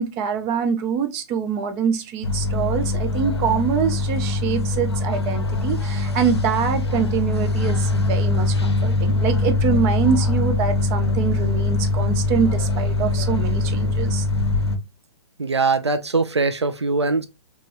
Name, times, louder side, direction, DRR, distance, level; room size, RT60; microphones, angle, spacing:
voice 1, 0.0-14.3, right 7 dB, 20° right, 0.4 m, -24 dB
sound 1, 2.2-14.8, left 2 dB, 70° left, 0.6 m, -22 dB
voice 2, 15.4-17.3, right 3 dB, 85° right, 0.4 m, -21 dB
2.9 x 2.4 x 2.8 m
figure-of-eight pair, 120°, 14 cm